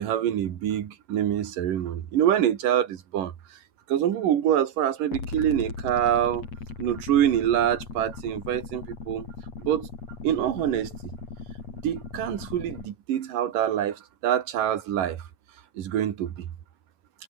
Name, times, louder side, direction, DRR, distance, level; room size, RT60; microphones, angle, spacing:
voice 1, 0.0-3.3 3.9-6.4 6.8-9.3 9.6-9.9 10.2-10.9 11.8-15.2 15.8-16.4, right 10 dB, 85° right, 3.5 m, -25 dB
sound 1, 5.1-12.9, left 4 dB, 55° left, 5.9 m, -38 dB
omnidirectional pair, 3.7 m